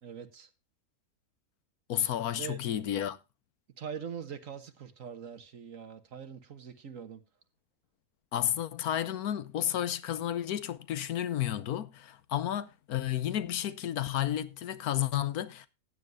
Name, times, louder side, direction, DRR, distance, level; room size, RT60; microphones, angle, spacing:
voice 1, 0.0-0.5 2.4-2.6 3.8-7.2, right 7 dB, 60° right, 1.6 m, -42 dB
voice 2, 1.9-3.2 8.3-15.7, left 11 dB, 90° left, 1.3 m, -32 dB
15.0 x 9.6 x 2.6 m
omnidirectional pair, 1.5 m